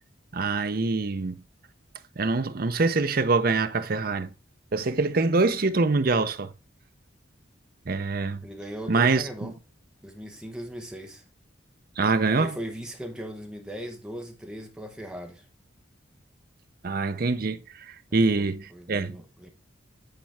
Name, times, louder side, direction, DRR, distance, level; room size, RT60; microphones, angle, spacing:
voice 1, 0.3-1.4 2.2-4.3 4.7-6.5 7.9-8.4 8.9-9.5 12.0-12.6 16.8-19.2, right 3 dB, 50° right, 0.6 m, -25 dB
voice 2, 8.4-9.5 10.0-11.2 12.3-15.4 18.1-19.5, equal, 5° right, 1.2 m, -39 dB
9.0 x 4.4 x 3.5 m
head